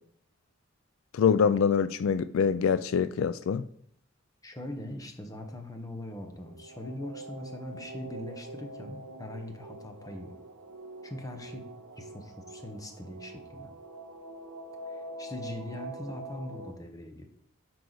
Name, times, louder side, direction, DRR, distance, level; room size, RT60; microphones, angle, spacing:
voice 1, 1.1-3.6, left 6 dB, 80° left, 0.3 m, -25 dB
voice 2, 4.4-10.3 11.0-11.6 12.0-13.7 14.9-17.3, left 1 dB, 15° left, 0.9 m, -41 dB
sound 1, 6.0-16.7, right 2 dB, 75° right, 0.9 m, -45 dB
9.3 x 4.7 x 3.9 m
head